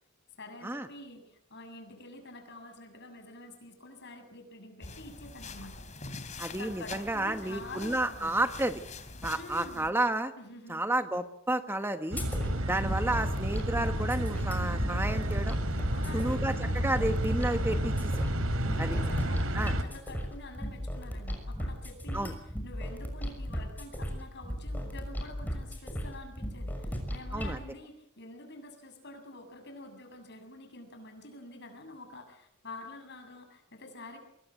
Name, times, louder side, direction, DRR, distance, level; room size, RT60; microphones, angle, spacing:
voice 1, 0.4-5.8 6.5-8.4 9.3-9.9 10.4-10.8 15.9-16.5 18.7-34.2, left 2 dB, 55° left, 6 dB, 7.4 m, -47 dB
sound 1, 4.8-9.9, left 3 dB, 35° left, 3.2 m, -44 dB
voice 2, 6.4-8.8 9.2-10.3 10.7-12.2 12.7-15.6 16.1-18.2 18.8-19.0 19.5-19.7 22.1-22.3 27.3-27.6, right 1 dB, 10° right, 8 dB, 1.3 m, -31 dB
sound 2, 12.1-19.8, right 1 dB, 80° right, 3.1 m, -31 dB
sound 3, 12.2-27.6, equal, 10° left, 6.2 m, -37 dB
25.5 x 22.5 x 7.8 m, 0.71 s
head